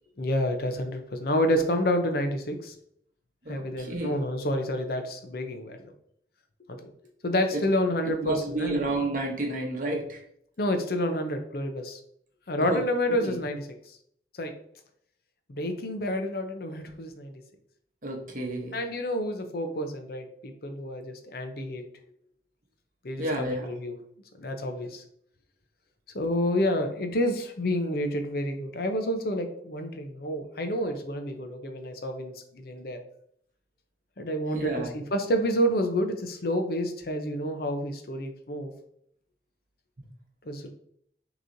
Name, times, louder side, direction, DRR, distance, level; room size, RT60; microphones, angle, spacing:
voice 1, 0.2-2.7 3.5-5.8 6.7-6.9 7.2-8.8 10.6-12.0 12.5-14.0 14.4-14.5 15.5-17.3 18.7-21.8 23.0-24.0 24.4-25.0 26.1-33.0 34.2-38.7 40.4-40.7, equal, 60° left, 6 dB, 0.7 m, -29 dB
voice 2, 3.4-4.2 8.2-10.2 12.6-12.8 13.2-13.4 18.0-18.8 23.2-23.7 34.5-34.9, right 2 dB, 50° right, 1 dB, 1.0 m, -31 dB
6.3 x 3.0 x 2.7 m, 0.68 s
head